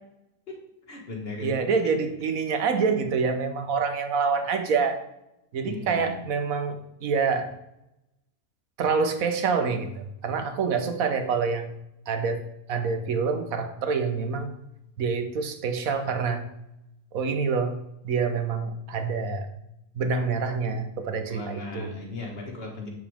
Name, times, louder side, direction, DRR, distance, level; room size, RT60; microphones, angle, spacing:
voice 1, 0.9-1.6 5.6-6.2 21.3-22.9, left 2 dB, 45° left, 0 dB, 1.8 m, -37 dB
voice 2, 1.4-5.0 5.5-7.5 8.8-11.7 12.1-12.4 12.7-14.5 15.0-16.5 17.1-17.8 18.0-19.5 19.9-21.9, right 5 dB, 85° right, 8 dB, 1.4 m, -26 dB
8.1 x 7.1 x 3.5 m, 0.85 s
omnidirectional pair, 1.4 m